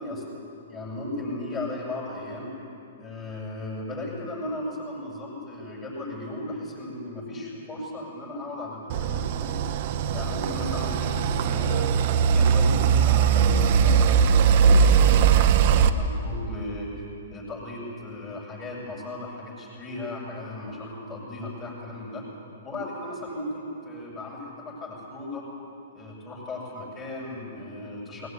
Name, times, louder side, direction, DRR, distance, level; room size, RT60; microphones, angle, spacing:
voice 1, 0.0-2.6 3.0-9.7 10.1-11.9 12.3-16.9 17.3-22.2 22.6-25.5 25.9-28.3, left 2 dB, 20° left, -3 dB, 7.9 m, -36 dB
sound 1, 8.9-15.9, right 7 dB, 45° right, 1.1 m, -20 dB
20.5 x 19.5 x 9.8 m, 2.7 s
hypercardioid pair, 145°, 0 cm